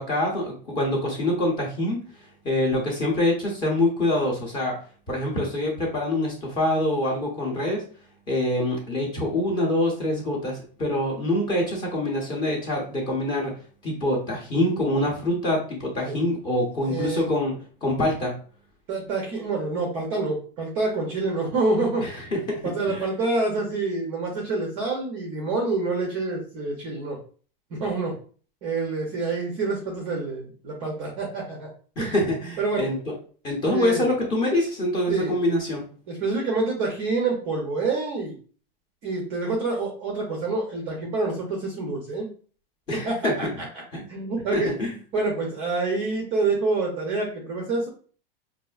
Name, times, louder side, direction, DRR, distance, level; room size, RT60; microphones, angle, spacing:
voice 1, 0.0-2.0 2.4-4.7 5.1-7.8 8.3-13.5 13.8-17.5 17.8-18.3 22.0-22.6 22.9-23.1 32.0-33.1 33.4-35.8 42.9-43.3 43.9-44.0 44.5-44.9, left 1 dB, 15° left, -1 dB, 0.7 m, -25 dB
voice 2, 16.8-17.3 18.9-22.1 22.6-27.2 27.7-28.1 28.6-31.7 32.0-32.2 32.6-32.9 33.7-34.1 35.1-35.4 36.1-38.3 39.0-42.3 42.9-43.7 44.1-44.7 45.1-47.9, right 3 dB, 20° right, 0 dB, 0.5 m, -27 dB
5.2 x 2.6 x 2.3 m, 0.41 s
supercardioid pair, 175°, 29 cm